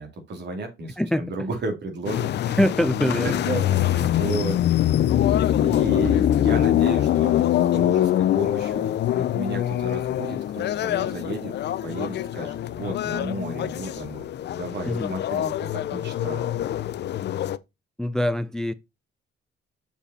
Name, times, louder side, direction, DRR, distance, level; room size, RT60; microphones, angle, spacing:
voice 1, 0.0-2.6 3.1-4.6 5.6-11.5 11.8-14.3 14.5-16.5, right 3 dB, 60° right, 2.7 m, -33 dB
voice 2, 1.0-1.5 2.6-3.4 14.9-15.1 18.0-18.7, equal, 5° left, 0.4 m, -24 dB
sound 1, 2.0-17.6, left 12 dB, 60° left, 0.5 m, -24 dB
6.9 x 5.0 x 4.0 m
cardioid pair, 90°, 20 cm